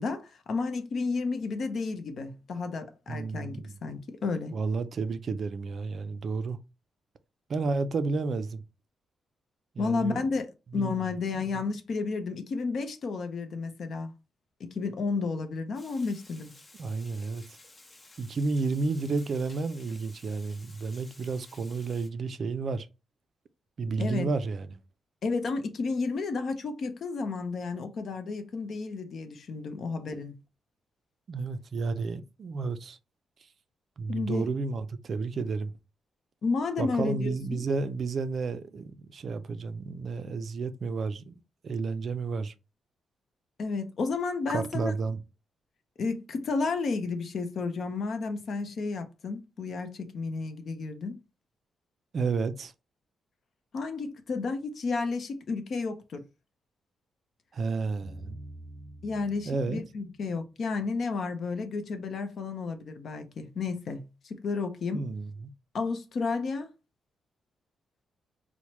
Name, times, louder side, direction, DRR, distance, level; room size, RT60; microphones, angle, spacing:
voice 1, 0.0-4.6 9.8-10.5 10.7-14.1 14.6-16.5 24.0-24.3 25.2-30.3 34.1-34.4 36.4-37.6 43.6-44.9 46.0-51.2 53.7-56.2 59.0-65.1 65.7-66.7, left 4 dB, 50° left, 0.6 m, -32 dB
voice 2, 3.1-3.7 4.5-6.6 7.5-8.6 9.8-10.2 10.8-11.0 16.8-17.4 18.2-22.9 23.8-24.7 31.3-33.0 34.0-35.7 36.8-42.5 44.5-45.2 52.1-52.7 57.5-58.4 59.4-59.8 64.9-65.5, right 4 dB, 45° right, 0.4 m, -31 dB
Water, 15.7-22.1, left 2 dB, 30° left, 0.9 m, -54 dB
sound 1, 58.0-61.1, right 1 dB, 5° right, 0.6 m, -47 dB
4.5 x 2.1 x 2.9 m
wide cardioid pair, 150°, 0 cm